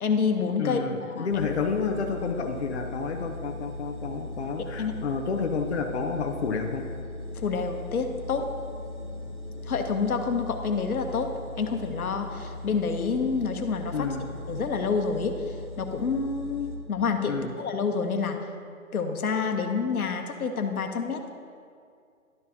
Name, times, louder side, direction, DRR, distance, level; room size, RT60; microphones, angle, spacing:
voice 1, 0.0-1.5 4.8-4.9 7.4-8.5 9.7-11.3 11.6-14.1 14.5-18.4 18.9-21.3, left 5 dB, 85° left, 5 dB, 1.1 m, -28 dB
voice 2, 0.6-6.9 13.9-14.3 17.3-17.5, left 5 dB, 50° left, 2 dB, 0.7 m, -30 dB
sound 1, 1.3-16.8, left 2 dB, 35° right, 0.9 m, -38 dB
12.0 x 6.7 x 2.8 m, 2.2 s
hypercardioid pair, 175°, 43 cm